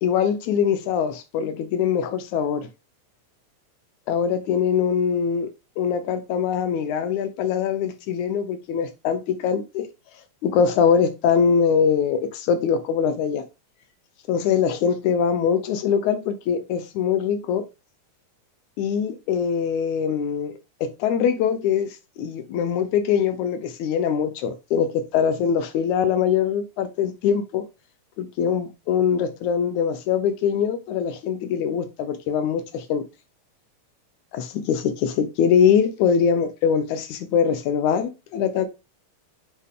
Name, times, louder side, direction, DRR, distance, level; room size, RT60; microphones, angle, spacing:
voice 1, 0.0-2.7 4.1-5.5 5.8-9.9 10.4-13.4 14.3-17.6 18.8-27.6 28.2-33.0 34.3-38.7, left 7 dB, 80° left, 2.3 m, -23 dB
7.9 x 4.0 x 3.7 m
omnidirectional pair, 3.4 m